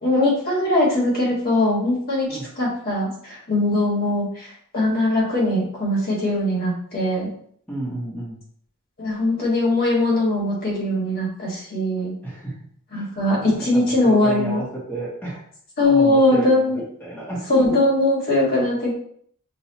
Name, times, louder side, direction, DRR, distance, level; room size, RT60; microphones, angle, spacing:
voice 1, 0.0-2.3 2.6-7.3 9.0-12.1 12.9-14.6 15.8-16.8 17.5-18.9, left 1 dB, 45° left, -4 dB, 1.6 m, -20 dB
voice 2, 7.7-8.4 12.2-12.5 12.9-13.1 13.4-15.4 15.8-17.6, right 2 dB, 10° left, -7 dB, 1.0 m, -32 dB
5.7 x 2.5 x 2.9 m, 0.63 s
head